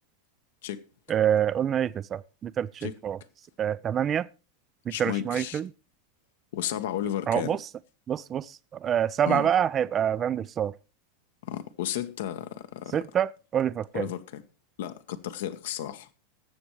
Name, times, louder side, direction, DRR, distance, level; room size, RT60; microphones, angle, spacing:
voice 1, 1.1-3.2 3.6-4.3 4.9-5.7 7.3-7.6 8.1-10.7 12.9-14.1, right 9 dB, 30° right, 0.4 m, -26 dB
voice 2, 4.9-5.6 6.5-7.6 9.3-9.5 11.4-13.0 13.9-14.4 14.8-16.1, left 11 dB, 65° left, 1.1 m, -33 dB
20.0 x 7.3 x 3.1 m
hypercardioid pair, 95°, 0 cm